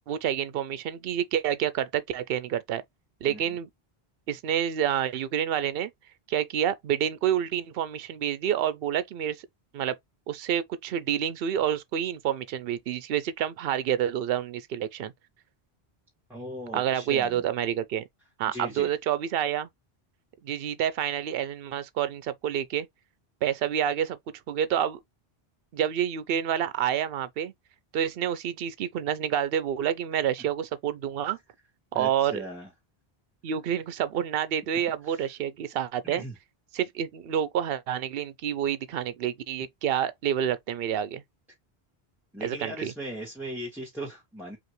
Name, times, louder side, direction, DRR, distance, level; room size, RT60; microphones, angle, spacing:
voice 1, 0.1-2.8 3.2-3.7 4.3-5.9 6.3-9.4 9.7-10.0 10.3-15.1 16.7-18.0 18.4-19.7 20.4-22.9 23.4-24.2 24.5-25.0 25.7-27.5 27.9-31.4 31.9-32.4 33.4-36.2 36.7-41.2 42.4-42.9, right 9 dB, 70° right, 0.8 m, -28 dB
voice 2, 16.3-17.4 18.5-18.9 31.9-32.7 36.0-36.4 42.3-44.6, equal, ahead, 1.9 m, -38 dB
5.0 x 2.7 x 3.0 m
omnidirectional pair, 1.0 m